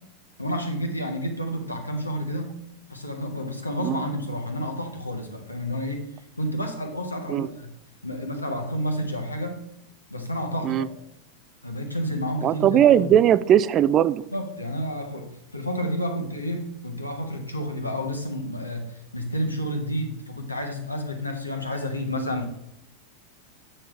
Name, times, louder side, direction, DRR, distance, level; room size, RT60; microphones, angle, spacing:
voice 1, 0.4-2.6 2.9-6.1 6.4-7.7 8.0-9.7 10.1-10.9 11.6-13.1 14.3-22.4, equal, 85° left, 3 dB, 1.3 m, -30 dB
voice 2, 12.4-14.2, right 10 dB, 30° right, 16 dB, 0.3 m, -19 dB
8.7 x 6.6 x 3.3 m, 0.78 s
figure-of-eight pair, 90°, 0 cm